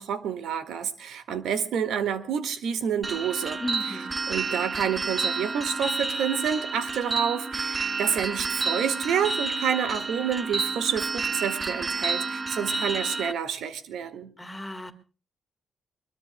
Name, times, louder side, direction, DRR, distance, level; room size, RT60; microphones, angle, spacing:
voice 1, 0.0-3.6 3.9-4.0 4.3-14.3, right 8 dB, 90° right, 10 dB, 1.8 m, -28 dB
sound 1, 3.0-13.3, right 4 dB, 20° right, 0.9 m, -30 dB
voice 2, 3.6-4.1 14.4-14.9, left 2 dB, 10° left, 8 dB, 1.7 m, -35 dB
23.5 x 21.5 x 2.2 m, 0.36 s
cardioid pair, 140°, 0 cm